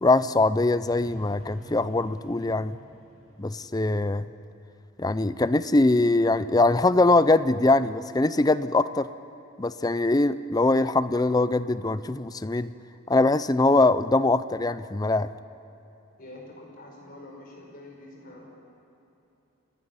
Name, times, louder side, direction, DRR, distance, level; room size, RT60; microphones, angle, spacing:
voice 1, 0.0-2.8 3.4-4.3 5.0-9.1 9.6-12.7 13.1-15.3, left 2 dB, 20° left, 14 dB, 0.5 m, -22 dB
sound 1, 0.9-4.7, equal, 75° left, 5.9 m, -49 dB
voice 2, 16.2-18.5, left 1 dB, 45° left, -1 dB, 5.3 m, -45 dB
28.5 x 13.0 x 9.7 m, 2.9 s
head